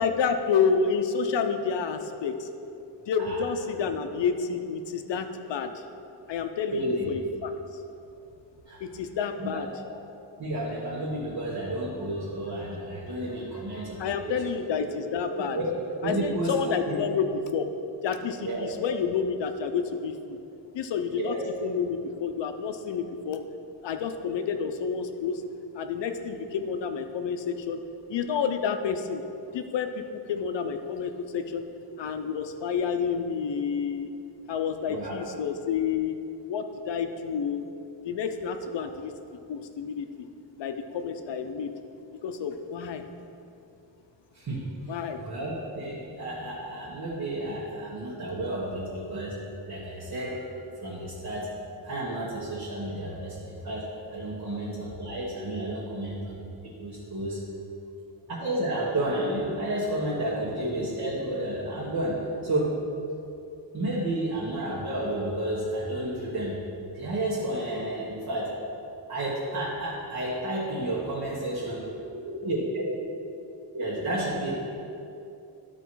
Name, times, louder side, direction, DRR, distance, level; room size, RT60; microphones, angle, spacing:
voice 1, 0.0-2.5 3.1-5.7 6.3-7.5 8.8-9.7 13.7-15.6 16.0-17.7 18.0-20.4 20.7-21.3 21.6-23.4 23.8-25.4 25.8-27.8 28.1-29.2 29.5-31.6 32.0-34.1 34.5-36.1 36.5-37.7 38.0-39.1 39.5-40.3 40.6-41.7 42.2-43.0 44.9-45.2 54.5-54.6, left 6 dB, 80° left, 7 dB, 0.7 m, -29 dB
voice 2, 6.7-7.1 8.7-8.8 9.4-9.7 10.4-14.4 14.8-15.0 15.3-15.7 16.0-17.0 18.4-18.7 21.1-21.4 34.9-35.2 44.3-49.4 49.7-50.5 50.8-51.5 51.8-57.4 58.3-62.7 63.7-66.5 66.9-68.5 69.1-71.8 72.1-73.1 73.7-74.5, right 1 dB, 50° right, -6 dB, 1.4 m, -31 dB
12.0 x 4.4 x 4.6 m, 2.7 s
wide cardioid pair, 160°, 43 cm